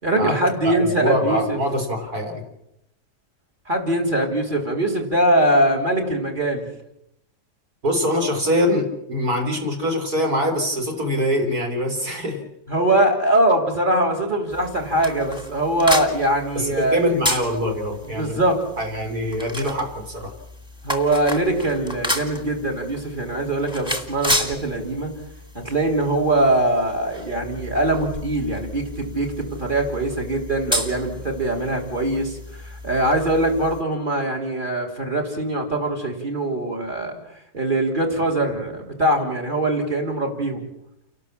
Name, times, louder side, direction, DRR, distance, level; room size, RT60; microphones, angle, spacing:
voice 1, 0.0-1.6 3.7-6.6 12.7-17.0 18.1-18.6 20.8-25.1 25.6-37.2 37.5-40.7, right 1 dB, 30° right, 3 dB, 3.6 m, -22 dB
voice 2, 0.6-2.4 7.8-12.4 16.6-18.4 18.8-20.3, equal, 70° right, 3 dB, 4.1 m, -23 dB
sound 1, 14.5-33.8, left 1 dB, 5° right, 1.8 m, -32 dB
29.5 x 12.0 x 7.3 m, 0.81 s
omnidirectional pair, 1.6 m